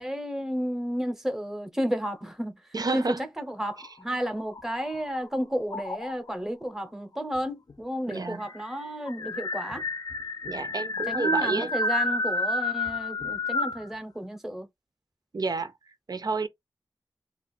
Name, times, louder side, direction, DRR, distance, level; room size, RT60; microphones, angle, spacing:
voice 1, 0.0-2.6 2.9-9.8 11.1-14.7, equal, 5° right, 0.8 m, -32 dB
voice 2, 2.7-3.2 8.1-8.4 10.5-11.7 15.3-15.7 16.1-16.5, right 3 dB, 55° right, 0.5 m, -30 dB
sound 1, 3.7-5.2 5.7-6.3 7.3-7.4 7.7-7.8 8.1-13.9, left 2 dB, 55° left, 0.4 m, -30 dB
2.4 x 2.4 x 4.1 m
wide cardioid pair, 80°, 8 cm